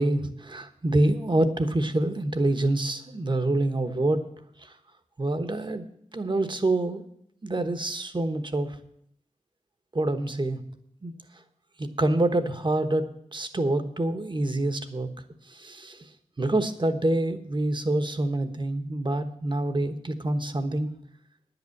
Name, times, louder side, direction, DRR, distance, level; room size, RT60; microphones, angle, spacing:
voice 1, 0.0-4.2 5.2-5.9 6.1-7.0 7.4-8.8 9.9-10.6 11.0-11.1 11.8-15.1 15.5-16.0 16.4-20.9, right 2 dB, 40° right, 9 dB, 1.1 m, -26 dB
10.5 x 8.1 x 7.1 m, 0.70 s
wide cardioid pair, 80°, 13 cm